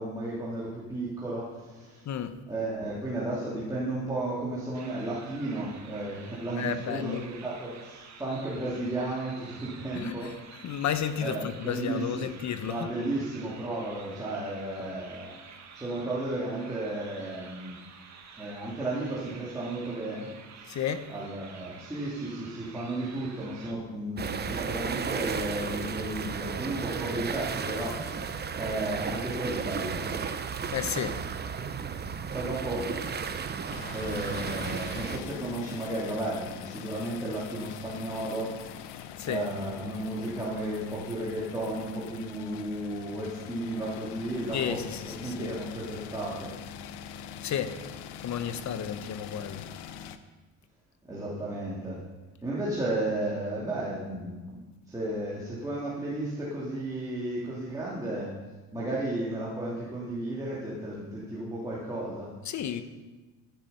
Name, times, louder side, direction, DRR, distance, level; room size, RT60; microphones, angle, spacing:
voice 1, 0.0-2.0 2.5-10.3 11.2-12.3 12.7-15.3 15.7-17.8 18.4-20.3 20.6-20.8 21.1-30.1 32.0-33.4 33.9-39.0 39.2-46.5 51.1-52.0 52.4-58.3 58.7-62.3, right 1 dB, 10° right, -8 dB, 2.9 m, -34 dB
voice 2, 2.0-2.4 6.6-7.2 9.9-10.3 10.6-12.9 20.7-21.1 30.7-31.2 39.2-39.5 44.5-45.6 47.4-47.8 48.2-49.7 62.4-62.8, left 9 dB, 40° left, 11 dB, 1.0 m, -32 dB
sound 1, 4.7-23.7, right 5 dB, 40° right, 1.8 m, -50 dB
sound 2, 24.2-35.2, right 6 dB, 25° right, 0.8 m, -34 dB
sound 3, 33.7-50.2, left 9 dB, 70° left, 1.0 m, -43 dB
13.5 x 10.5 x 5.6 m, 1.2 s
cardioid pair, 120°, 41 cm